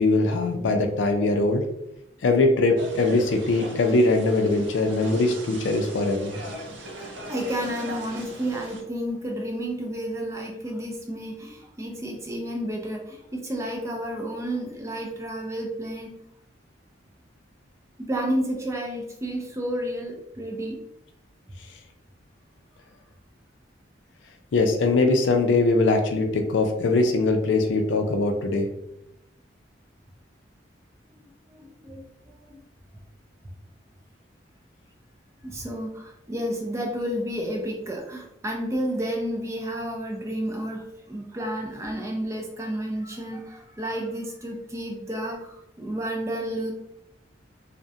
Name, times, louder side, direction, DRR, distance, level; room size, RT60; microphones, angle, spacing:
voice 1, 0.0-1.6 2.2-6.4 24.5-28.7, left 2 dB, 75° left, 4 dB, 0.4 m, -21 dB
sound 1, 2.8-8.8, right 1 dB, 80° right, 0.5 m, -39 dB
voice 2, 6.9-16.1 18.0-20.8 31.2-32.0 32.5-32.6 35.4-46.7, equal, 15° right, 1 dB, 0.3 m, -31 dB
2.3 x 2.1 x 2.6 m, 0.82 s
head